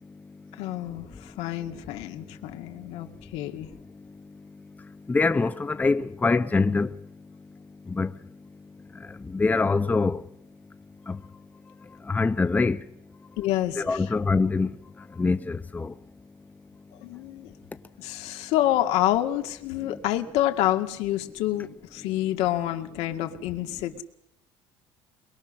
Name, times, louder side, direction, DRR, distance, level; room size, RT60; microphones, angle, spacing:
voice 1, 0.6-3.7 13.4-14.0 17.0-17.5 18.0-24.0, left 13 dB, 80° left, 2.1 m, -28 dB
voice 2, 5.1-7.0 7.9-8.1 9.1-10.2 11.1-11.2 12.1-12.8 13.8-14.7 15.2-15.9 19.8-20.0, left 3 dB, 15° left, 0.8 m, -24 dB
23.5 x 22.0 x 6.5 m
cardioid pair, 115°, 11 cm